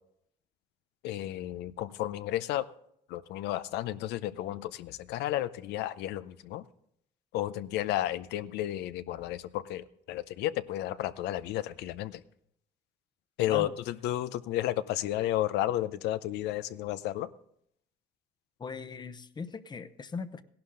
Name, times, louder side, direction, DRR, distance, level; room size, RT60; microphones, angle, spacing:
voice 1, 1.0-2.7 3.1-6.6 7.3-12.2 13.4-17.3, left 13 dB, 85° left, 15 dB, 0.6 m, -32 dB
voice 2, 18.6-20.4, left 5 dB, 25° left, 14 dB, 0.8 m, -39 dB
16.5 x 11.5 x 3.8 m, 0.70 s
cardioid pair, 110°, 17 cm